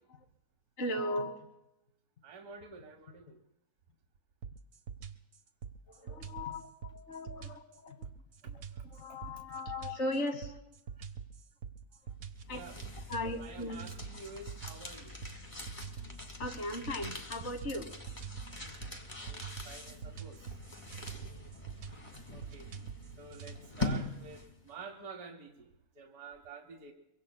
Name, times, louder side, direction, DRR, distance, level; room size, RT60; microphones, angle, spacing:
voice 1, 0.8-1.6 5.9-8.1 8.4-10.6 12.5-12.6 13.1-13.9 16.4-17.9 21.2-21.5, left 1 dB, 50° left, 7 dB, 1.6 m, -38 dB
voice 2, 2.2-3.4 12.5-12.8 13.4-15.1 19.2-20.4 22.3-22.7 23.2-25.5 26.0-26.9, right 4 dB, 85° right, 3 dB, 1.6 m, -49 dB
sound 1, 4.4-23.6, right 6 dB, 65° right, 1.3 m, -46 dB
sound 2, 12.2-24.7, left 2 dB, 20° left, 1.3 m, -43 dB
24.0 x 23.5 x 2.2 m, 0.90 s
omnidirectional pair, 1.6 m